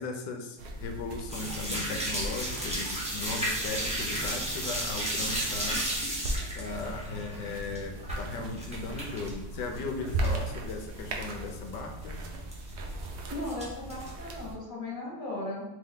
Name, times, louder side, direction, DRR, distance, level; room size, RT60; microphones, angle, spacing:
voice 1, 0.0-5.9 6.6-12.3, left 3 dB, 80° left, 4 dB, 1.2 m, -37 dB
sound 1, 0.6-14.6, right 2 dB, 90° right, 0.6 m, -38 dB
sound 2, 1.3-9.3 9.6-10.4 10.7-10.8 11.2-11.3 11.5-11.7 12.5-13.0 13.4-14.1, right 1 dB, 10° right, 0.4 m, -33 dB
voice 2, 13.3-15.6, left 1 dB, 30° left, -6 dB, 1.7 m, -37 dB
3.3 x 3.3 x 3.6 m, 0.95 s
omnidirectional pair, 1.9 m